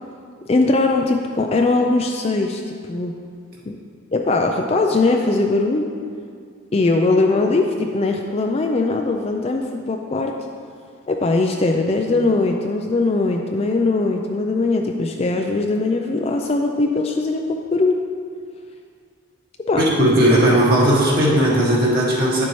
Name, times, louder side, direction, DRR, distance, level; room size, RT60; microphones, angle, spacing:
voice 1, 0.5-3.1 3.7-3.8 4.1-5.9 6.7-10.4 11.1-18.0 19.7-19.8, left 3 dB, 30° left, 3 dB, 0.3 m, -20 dB
voice 2, 19.8-22.4, right 1 dB, 50° right, -6 dB, 1.9 m, -16 dB
9.7 x 6.9 x 3.1 m, 2.2 s
head